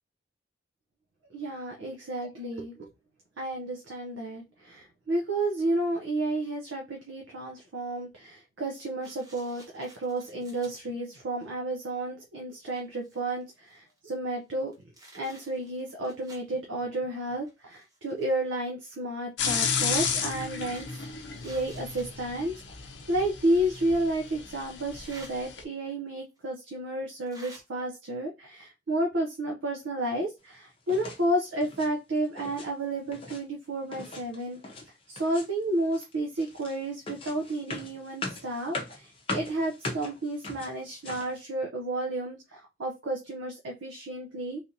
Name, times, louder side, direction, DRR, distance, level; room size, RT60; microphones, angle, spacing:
voice 1, 1.3-2.9 3.4-14.7 15.1-20.9 21.1-22.5 23.1-34.8 35.1-44.6, right 1 dB, 80° right, 1 dB, 0.6 m, -31 dB
sound 1, 9.0-10.7 11.4-11.5 12.2-12.3 12.6-14.0 14.5-16.5 17.4-18.5 19.5-22.1 23.4-23.5 24.8-25.3 26.4-26.5 27.3-27.6, right 1 dB, 20° right, 0.9 m, -52 dB
sound 2, 19.4-25.6, left 6 dB, 70° left, 0.6 m, -33 dB
sound 3, 30.9-31.2 31.5-31.9 32.2-32.7 32.9-33.4 33.9-34.9 35.1-35.6 35.9-41.4, left 2 dB, 30° left, 0.6 m, -39 dB
3.2 x 2.5 x 2.7 m, 0.25 s
head